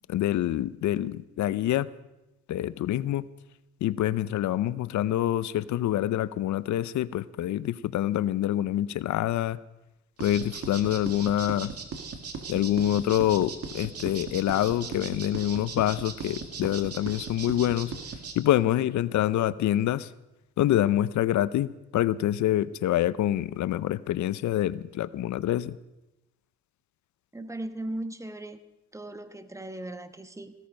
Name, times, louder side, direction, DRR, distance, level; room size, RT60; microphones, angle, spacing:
voice 1, 0.1-1.9 2.5-3.3 3.8-9.6 10.2-11.7 12.5-17.9 18.4-20.1 20.6-25.8, left 12 dB, 70° left, 18 dB, 0.6 m, -26 dB
sound 1, 10.2-18.3, right 5 dB, 50° right, 2.1 m, -37 dB
voice 2, 27.3-28.6 28.9-30.5, right 1 dB, 10° right, 10 dB, 1.2 m, -37 dB
16.5 x 13.5 x 5.3 m, 0.97 s
cardioid pair, 90°, 30 cm